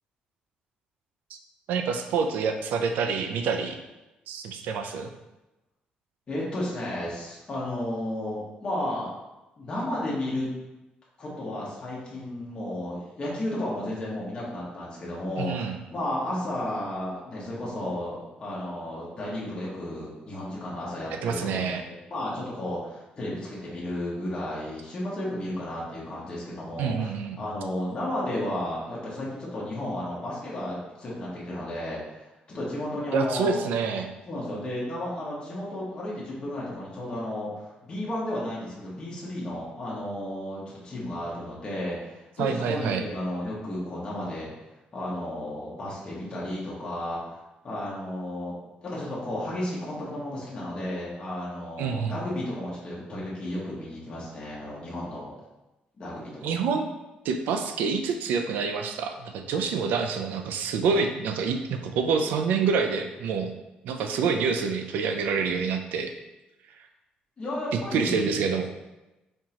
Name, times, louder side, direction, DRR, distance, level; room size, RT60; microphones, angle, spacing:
voice 1, 1.7-3.8 4.3-5.1 15.4-15.8 21.2-21.8 26.8-27.4 33.1-34.1 42.4-43.0 51.8-52.2 56.4-56.9 57.2-63.5 63.8-66.1 67.9-68.7, right 5 dB, 85° right, 6 dB, 0.4 m, -27 dB
voice 2, 6.3-9.1 9.6-10.5 11.2-33.6 34.3-44.5 44.9-47.3 47.6-48.6 48.8-55.3 56.0-56.5 65.5-65.8 67.4-68.3, left 1 dB, 30° left, -7 dB, 1.2 m, -33 dB
4.4 x 3.7 x 2.9 m, 1.0 s
cardioid pair, 145°, 3 cm